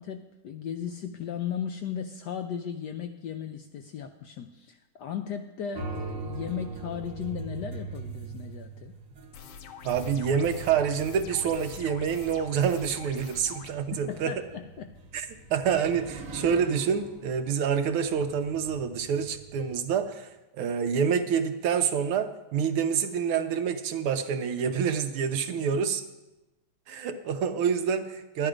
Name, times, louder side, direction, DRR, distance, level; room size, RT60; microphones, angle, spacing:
voice 1, 0.0-8.9 14.1-14.9, left 8 dB, 75° left, 7 dB, 1.0 m, -36 dB
sound 1, 5.7-20.0, right 3 dB, 50° right, 1.1 m, -42 dB
sound 2, 9.3-13.7, left 8 dB, 90° left, 1.7 m, -46 dB
voice 2, 9.8-14.3 15.1-26.0 26.9-28.5, right 7 dB, 85° right, 8 dB, 1.7 m, -27 dB
11.5 x 9.9 x 5.0 m, 1.0 s
omnidirectional pair, 2.3 m